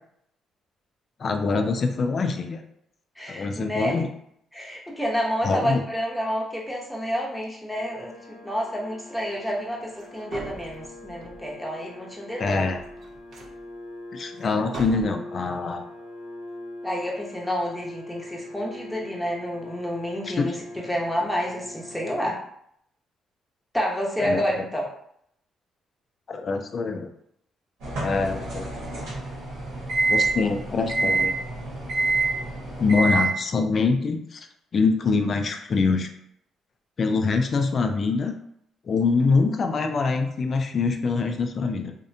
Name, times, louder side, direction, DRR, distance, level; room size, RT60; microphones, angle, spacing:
voice 1, 1.2-2.6 3.3-4.1 5.4-5.8 12.4-12.8 14.1-15.8 20.4-20.5 24.2-24.6 26.3-27.1 28.0-28.7 30.1-31.3 32.8-34.4 34.7-36.1 37.0-38.3 38.9-42.0, left 4 dB, 45° left, 6 dB, 0.3 m, -24 dB
voice 2, 3.2-3.9 4.5-12.7 16.8-22.4 23.7-24.9, equal, 5° left, -3 dB, 0.7 m, -29 dB
sound 1, 7.7-22.2, left 1 dB, 80° left, 0.7 m, -42 dB
sound 2, 10.0-10.1 10.3-11.5 12.5-13.6 14.4-14.5 14.7-15.1, right 2 dB, 65° right, 0.4 m, -39 dB
sound 3, 27.8-33.3, right 3 dB, 90° right, 1.0 m, -26 dB
2.6 x 2.1 x 2.6 m, 0.71 s
cardioid pair, 90°, 0 cm